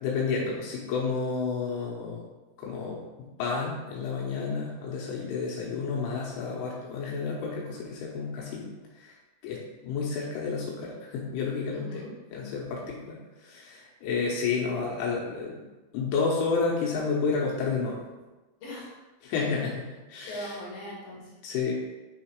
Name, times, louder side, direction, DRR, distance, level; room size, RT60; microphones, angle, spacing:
voice 1, 0.0-2.2 2.6-3.0 3.4-8.7 9.0-9.1 9.4-12.0 12.3-15.6 15.9-18.0 19.2-20.5 21.4-21.7, left 4 dB, 85° left, -4 dB, 3.4 m, -30 dB
voice 2, 11.7-12.1 18.6-18.9 19.4-19.6 20.3-21.3, equal, 55° left, -6 dB, 3.2 m, -40 dB
7.6 x 3.6 x 4.6 m, 1.2 s
omnidirectional pair, 5.6 m